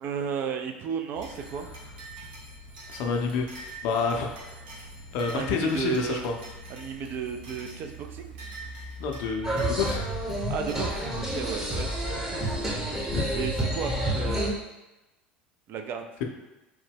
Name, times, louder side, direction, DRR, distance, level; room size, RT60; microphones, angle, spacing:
voice 1, 0.0-1.7 5.3-6.2 6.7-8.3 10.5-12.9 13.3-14.6 15.7-16.0, right 7 dB, 45° right, 6 dB, 0.4 m, -33 dB
sound 1, 1.1-11.0, right 1 dB, 75° right, 0.8 m, -43 dB
voice 2, 2.9-4.6 5.1-6.3 9.0-10.1 13.1-13.3, left 5 dB, 60° left, 3 dB, 0.5 m, -29 dB
sound 2, 9.4-14.5, right 1 dB, 10° right, 0.8 m, -29 dB
3.1 x 2.1 x 3.4 m, 1.0 s
hypercardioid pair, 70°, 5 cm